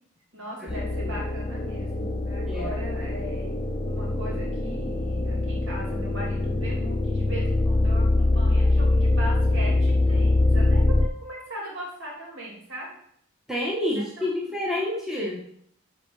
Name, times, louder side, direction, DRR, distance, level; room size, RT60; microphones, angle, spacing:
voice 1, 0.3-3.5 3.9-12.9 13.9-14.3 14.7-14.8, right 1 dB, 65° right, -3 dB, 3.0 m, -39 dB
sound 1, 0.7-11.1, left 2 dB, 25° left, 0.5 m, -23 dB
voice 2, 2.5-2.8 13.5-15.4, left 1 dB, ahead, -4 dB, 1.2 m, -29 dB
9.9 x 3.8 x 4.8 m, 0.67 s
head